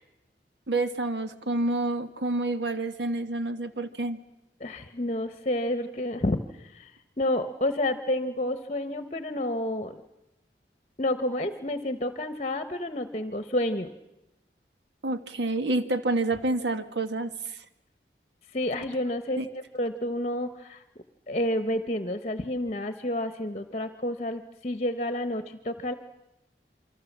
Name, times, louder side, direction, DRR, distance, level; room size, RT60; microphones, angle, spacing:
voice 1, 0.7-4.2 15.0-17.6 19.4-19.5, right 2 dB, 80° right, 9 dB, 1.5 m, -28 dB
voice 2, 4.6-6.9 7.2-10.0 11.0-13.9 18.5-20.8 21.3-25.9, left 1 dB, 35° left, 9 dB, 0.9 m, -30 dB
27.5 x 24.5 x 7.3 m, 0.91 s
head